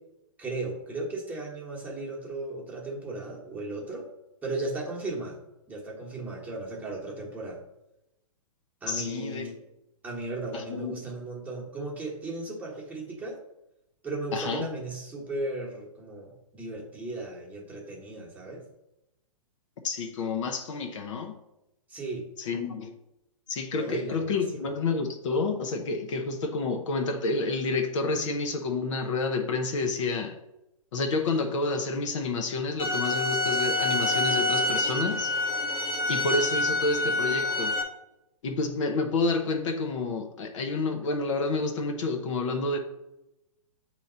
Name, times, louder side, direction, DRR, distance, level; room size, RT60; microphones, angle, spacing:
voice 1, 0.4-4.1 4.4-5.4 5.7-7.6 8.8-9.6 10.0-13.4 14.0-18.6 21.9-22.3 23.7-24.7, right 2 dB, 10° right, -3 dB, 1.2 m, -36 dB
voice 2, 8.9-9.4 10.5-11.0 14.3-14.7 19.8-21.3 22.4-23.0 23.5-30.4 30.9-35.3 36.1-37.8 38.4-42.8, left 3 dB, 60° left, 4 dB, 0.9 m, -29 dB
sound 1, 32.8-37.8, left 1 dB, 25° left, 1.0 m, -27 dB
8.2 x 3.0 x 3.9 m, 0.90 s
hypercardioid pair, 130°, 18 cm